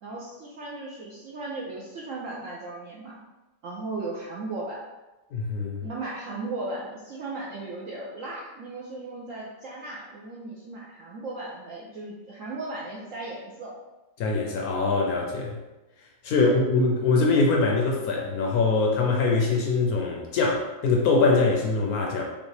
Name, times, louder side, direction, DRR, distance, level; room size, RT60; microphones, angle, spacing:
voice 1, 0.0-3.2 3.6-4.8 5.8-13.8 16.3-16.6, right 2 dB, 70° right, -4 dB, 0.7 m, -36 dB
voice 2, 5.3-5.9 14.2-15.6 16.2-22.2, left 3 dB, 70° left, 0 dB, 1.0 m, -23 dB
5.3 x 2.4 x 3.2 m, 1.1 s
omnidirectional pair, 1.9 m